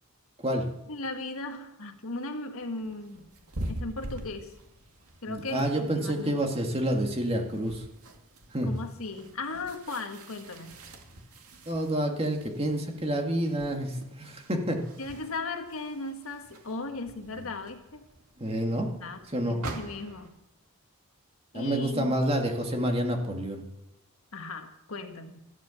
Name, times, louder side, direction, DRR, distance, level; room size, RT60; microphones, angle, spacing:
voice 1, 0.9-3.3 3.7-4.5 5.2-6.3 8.6-10.8 15.0-18.0 19.0-20.4 21.5-22.1 24.3-25.4, left 3 dB, 70° left, 5 dB, 1.7 m, -37 dB
sound 1, 2.6-20.3, right 1 dB, 75° right, 2.3 m, -45 dB
voice 2, 5.3-7.8 8.5-8.7 11.7-14.8 17.4-17.5 18.4-19.0 19.3-19.6 21.5-23.6, right 1 dB, 25° right, 2 dB, 2.2 m, -28 dB
13.5 x 12.5 x 7.2 m, 0.92 s
head